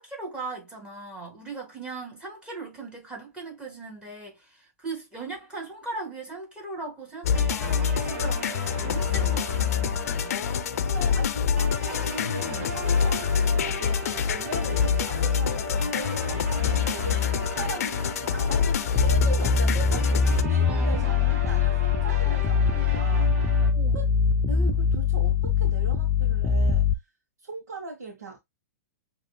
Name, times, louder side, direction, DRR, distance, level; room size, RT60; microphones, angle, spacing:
voice 1, 0.0-8.4 8.8-10.4 20.6-21.5 22.2-22.4 22.7-23.0 23.7-24.0, right 3 dB, 10° right, 2.9 m, -39 dB
sound 1, 7.2-20.4, left 7 dB, 65° left, 0.6 m, -26 dB
sound 2, 7.3-23.7, right 2 dB, 50° right, 2.0 m, -37 dB
voice 2, 10.8-18.0 18.3-23.3 23.9-24.0 24.5-26.8 27.4-28.4, right 2 dB, 80° right, 1.5 m, -39 dB
sound 3, 18.9-26.9, left 5 dB, 20° left, 0.4 m, -23 dB
7.5 x 3.0 x 2.3 m
hypercardioid pair, 120°, 9 cm